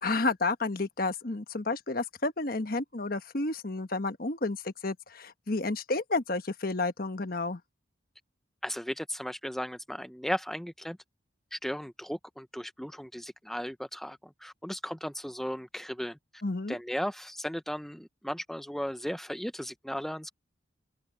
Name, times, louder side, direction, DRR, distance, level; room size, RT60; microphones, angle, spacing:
voice 1, 0.0-7.6 16.4-16.8, left 3 dB, 50° left, 1.2 m, -31 dB
voice 2, 8.6-11.0 11.5-16.4 16.7-20.3, equal, ahead, 0.6 m, -36 dB
open air
head